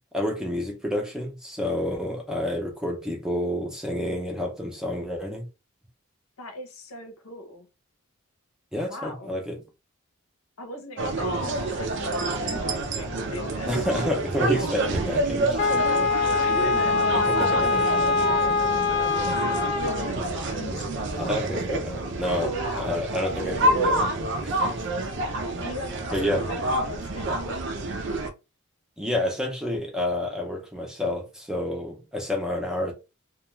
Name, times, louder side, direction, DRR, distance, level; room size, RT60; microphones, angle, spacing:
voice 1, 0.1-5.5 8.7-9.6 13.7-16.1 17.1-17.8 21.2-22.5 22.8-24.0 24.4-24.8 26.1-26.4 29.0-32.9, left 1 dB, 5° right, 0.5 m, -29 dB
voice 2, 6.4-7.7 8.9-9.4 10.6-13.7 16.4-17.7 17.9-20.9 22.4-23.1 25.6-27.6, left 1 dB, 85° left, 0.8 m, -39 dB
sound 1, 11.0-28.3, right 2 dB, 55° right, 0.5 m, -28 dB
Wind instrument woodwind instrument, 15.6-20.1, left 4 dB, 55° left, 0.3 m, -23 dB
2.3 x 2.2 x 3.0 m
head